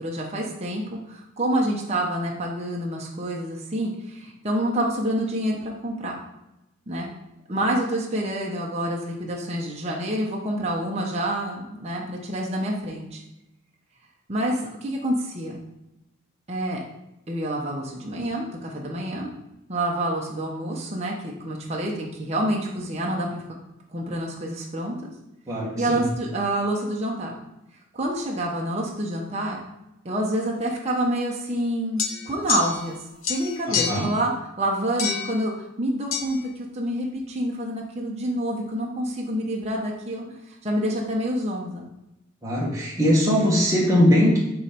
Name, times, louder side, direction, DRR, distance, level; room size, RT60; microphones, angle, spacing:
voice 1, 0.0-6.2 6.9-7.1 7.5-13.2 14.3-15.6 16.5-16.8 17.3-19.3 19.7-23.4 23.9-25.1 25.8-27.3 27.9-29.6 30.0-33.0 33.3-40.2 40.6-41.9, right 1 dB, 30° right, -2 dB, 0.9 m, -27 dB
voice 2, 25.5-26.0 33.9-34.1 42.4-44.4, equal, 15° right, -5 dB, 1.6 m, -20 dB
sound 1, 32.0-33.0 33.2-34.1 35.0-35.4 36.1-36.3, left 7 dB, 75° left, 0.7 m, -27 dB
7.2 x 3.2 x 5.2 m, 0.91 s
head